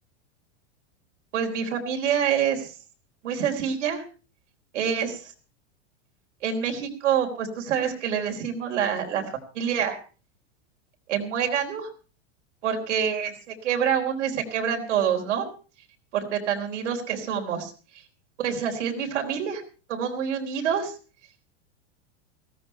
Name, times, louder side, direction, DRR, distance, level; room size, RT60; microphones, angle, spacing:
voice 1, 1.3-2.7 3.2-4.0 4.7-5.3 6.4-10.0 11.1-11.9 12.6-15.5 16.1-18.0 18.4-19.6 19.9-20.9, right 8 dB, 90° right, 2 dB, 4.1 m, -27 dB
17.0 x 14.0 x 4.5 m, 0.37 s
supercardioid pair, 165°, 35 cm